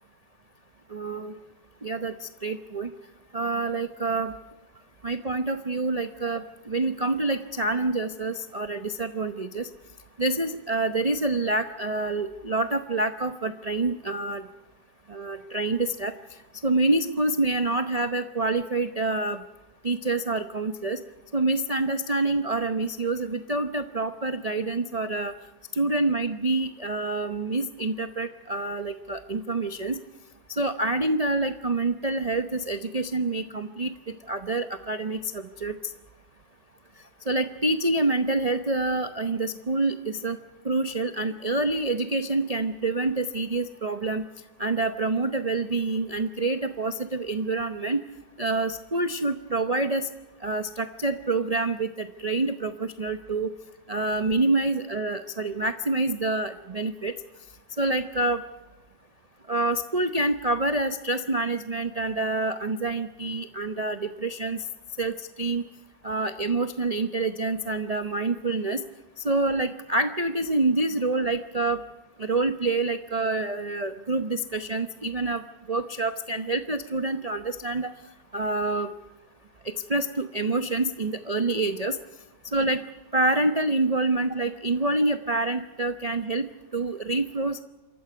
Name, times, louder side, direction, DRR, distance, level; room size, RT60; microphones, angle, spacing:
voice 1, 0.9-1.4 1.8-2.9 3.3-4.3 5.0-9.7 10.2-14.4 15.1-16.1 16.6-19.4 19.8-21.0 21.3-25.3 25.7-30.0 30.5-35.9 37.3-40.4 40.6-44.2 44.6-48.0 48.4-50.1 50.4-53.5 53.9-57.1 57.8-58.4 59.5-64.7 65.0-65.6 66.0-68.8 69.2-71.8 72.2-77.9 78.3-78.9 79.6-82.0 82.4-82.8 83.1-87.6, right 2 dB, 65° right, 7 dB, 0.3 m, -27 dB
26.5 x 14.0 x 9.4 m, 1.1 s
omnidirectional pair, 2.0 m